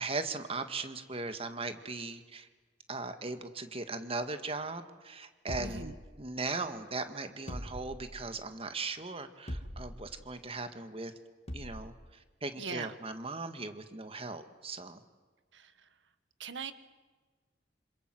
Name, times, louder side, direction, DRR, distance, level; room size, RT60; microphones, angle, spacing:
voice 1, 0.0-2.5 2.9-11.1 11.5-15.0, right 3 dB, 35° right, 9 dB, 1.9 m, -38 dB
sound 1, 5.5-6.6 7.5-8.4 9.5-10.2 11.5-12.0, equal, 35° left, 2.9 m, -42 dB
voice 2, 5.6-5.9 12.6-12.9 15.5-15.7 16.4-16.7, right 4 dB, 90° right, 12 dB, 1.5 m, -40 dB
27.5 x 27.0 x 7.8 m, 1.4 s
head